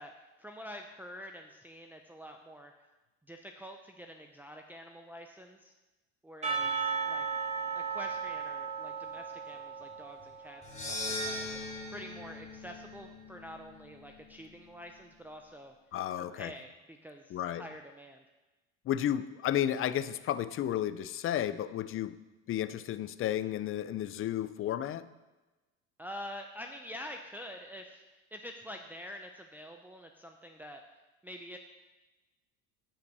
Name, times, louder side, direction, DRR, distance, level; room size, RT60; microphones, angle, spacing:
voice 1, 0.0-2.7 3.3-5.7 6.2-7.3 7.7-11.6 11.9-15.7 16.2-18.2 26.0-28.0 28.3-30.8 31.2-31.6, equal, 5° right, 2 dB, 0.7 m, -47 dB
Percussion / Church bell, 6.4-11.0, right 5 dB, 20° right, 3.6 m, -35 dB
sound 1, 10.6-15.0, left 1 dB, 25° left, 3.0 m, -41 dB
voice 2, 15.9-16.5 17.3-17.6 18.8-22.2 22.5-25.1, left 11 dB, 45° left, 14 dB, 0.6 m, -32 dB
9.9 x 5.7 x 6.9 m, 1.1 s
supercardioid pair, 100°, 31 cm